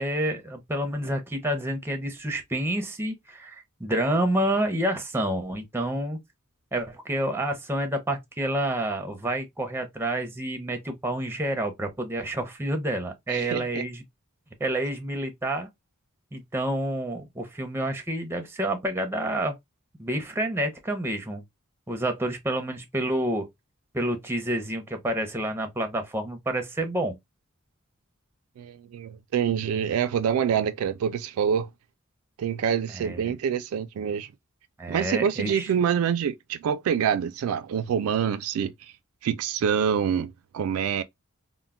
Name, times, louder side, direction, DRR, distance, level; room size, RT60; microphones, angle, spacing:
voice 1, 0.0-6.2 6.7-14.0 14.6-15.7 16.3-19.6 20.0-21.4 21.9-23.5 23.9-27.2 32.9-33.3 34.8-35.7, right 1 dB, 10° right, 0.5 m, -28 dB
voice 2, 13.3-13.8 28.6-31.7 32.4-34.3 34.9-38.9 39.2-41.0, right 8 dB, 75° right, 0.3 m, -26 dB
2.2 x 2.1 x 3.4 m
head